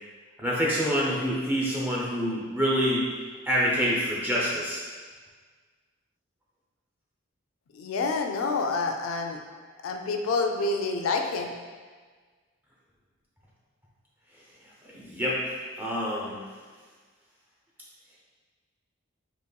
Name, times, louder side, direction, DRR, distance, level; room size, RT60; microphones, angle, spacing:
voice 1, 0.4-3.1 3.5-4.8 14.9-16.4, equal, 10° right, -6 dB, 0.5 m, -27 dB
voice 2, 7.7-9.4 9.8-11.5, left 3 dB, 70° left, 4 dB, 0.3 m, -28 dB
4.1 x 2.9 x 2.3 m, 1.5 s
head